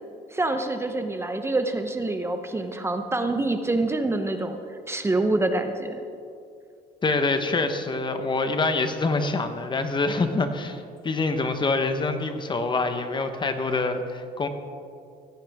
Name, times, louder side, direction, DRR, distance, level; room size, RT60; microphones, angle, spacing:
voice 1, 0.3-4.6 4.9-6.0, right 2 dB, 15° right, 6 dB, 0.9 m, -26 dB
voice 2, 7.0-14.5, left 3 dB, 25° left, 7 dB, 1.1 m, -25 dB
16.0 x 15.0 x 3.6 m, 2.4 s
cardioid pair, 110°, 17 cm